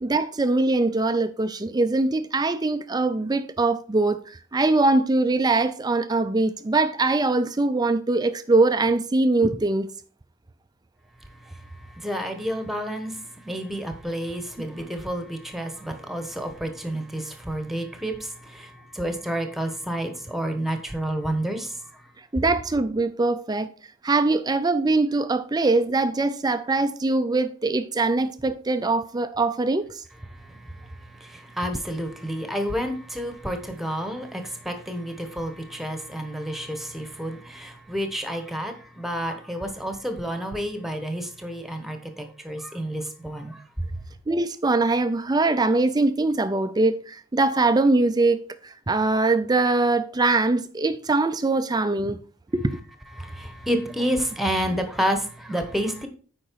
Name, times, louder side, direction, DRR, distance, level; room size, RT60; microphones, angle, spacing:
voice 1, 0.0-9.9 22.3-23.7 24.0-30.0 44.3-52.2 52.5-52.8, right 2 dB, 20° right, 0.5 m, -22 dB
voice 2, 11.2-22.0 30.3-43.9 53.2-56.1, equal, ahead, 1.2 m, -30 dB
8.7 x 5.2 x 4.6 m
head